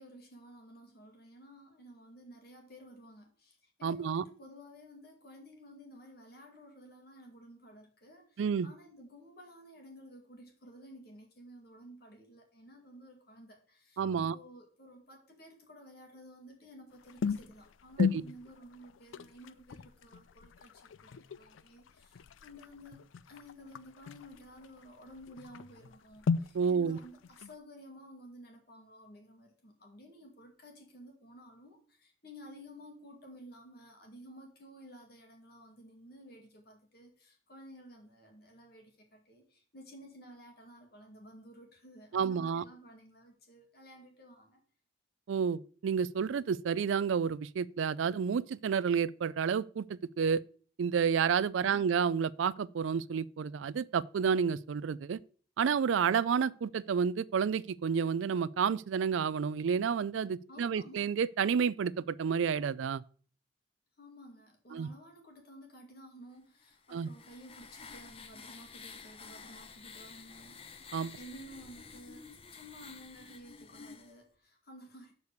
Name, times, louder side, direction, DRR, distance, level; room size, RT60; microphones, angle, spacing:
voice 1, 0.0-44.6 51.6-52.0 60.5-61.0 64.0-70.6 71.2-75.1, equal, 50° left, 2.3 m, -53 dB
voice 2, 3.8-4.2 8.4-8.7 14.0-14.4 18.0-18.2 26.5-27.0 42.1-42.6 45.3-50.4 50.8-55.2 55.6-63.0 64.7-64.9 66.9-67.1 70.9-71.2, right 6 dB, 75° right, 0.4 m, -30 dB
sound 1, 16.9-27.5, left 5 dB, 80° left, 0.4 m, -38 dB
sound 2, 66.6-74.1, left 5 dB, 30° left, 0.6 m, -51 dB
6.8 x 4.7 x 6.8 m
head